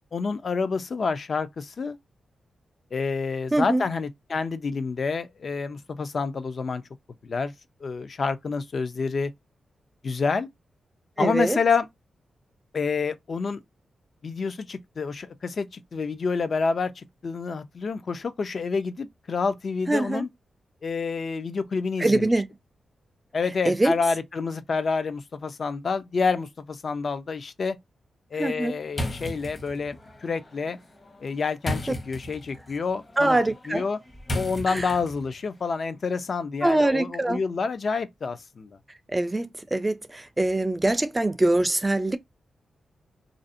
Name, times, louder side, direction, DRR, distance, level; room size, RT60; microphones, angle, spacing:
voice 1, 0.1-2.0 2.9-6.8 7.2-7.5 7.8-9.3 10.0-10.5 11.2-11.9 12.7-13.6 14.2-20.3 20.8-22.3 23.3-27.8 28.3-30.8 31.2-33.4 33.7-34.0 34.3-38.8, left 4 dB, 55° left, 0.4 m, -28 dB
voice 2, 3.5-3.8 11.2-11.6 19.9-20.3 22.0-22.4 23.6-23.9 28.4-28.8 33.2-33.8 34.7-34.9 36.6-37.4 39.1-42.2, right 2 dB, 20° right, 0.3 m, -23 dB
sound 1, 28.9-35.4, left 1 dB, 35° left, 0.8 m, -36 dB
2.5 x 2.0 x 2.5 m
cardioid pair, 80°, 0 cm